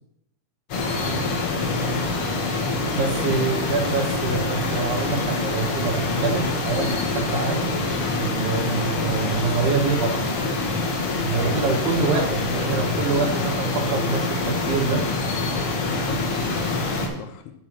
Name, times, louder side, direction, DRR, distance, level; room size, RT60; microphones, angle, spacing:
sound 1, 0.7-17.1, left 3 dB, 60° left, 1.5 m, -25 dB
voice 1, 1.2-2.0 3.2-3.6 11.4-13.1 15.7-17.5, left 8 dB, 80° left, 7 dB, 2.8 m, -39 dB
voice 2, 2.9-7.7 8.2-10.2 11.2-15.1, right 5 dB, 80° right, 2 dB, 3.4 m, -26 dB
sound 2, 8.5-13.5, right 3 dB, 20° right, 3.3 m, -45 dB
7.4 x 6.2 x 6.1 m, 0.77 s
omnidirectional pair, 4.5 m